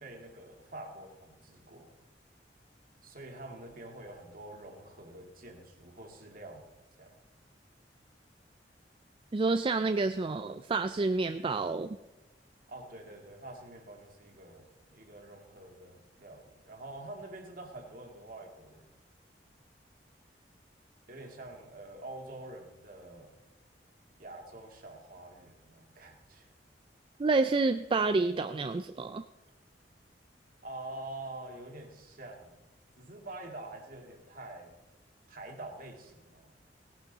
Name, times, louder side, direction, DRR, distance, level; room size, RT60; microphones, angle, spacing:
voice 1, 0.0-1.9 3.0-6.7 7.0-7.2 12.7-18.9 21.1-23.3 24.2-26.5 30.6-32.6 33.0-34.7 35.3-36.5, right 2 dB, 55° right, 2 dB, 2.2 m, -46 dB
voice 2, 9.3-12.0 27.2-29.2, right 3 dB, 30° right, 9 dB, 0.4 m, -29 dB
17.0 x 11.5 x 4.0 m, 1.0 s
head